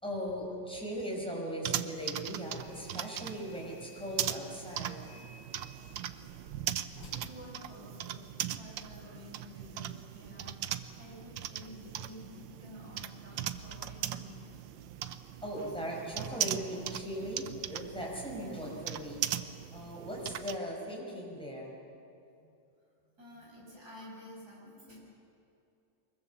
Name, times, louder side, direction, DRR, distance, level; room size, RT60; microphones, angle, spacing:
voice 1, 0.0-5.0 15.4-21.7, equal, 5° left, -3 dB, 5.3 m, -39 dB
sound 1, 1.6-20.6, right 11 dB, 90° right, 1.5 m, -39 dB
sound 2, 2.6-8.4, left 2 dB, 90° left, 4.0 m, -57 dB
voice 2, 7.1-8.2 8.6-14.4 22.4-22.5 23.2-25.0, equal, 55° right, -4 dB, 7.4 m, -50 dB
24.0 x 22.5 x 7.0 m, 2.6 s
omnidirectional pair, 2.0 m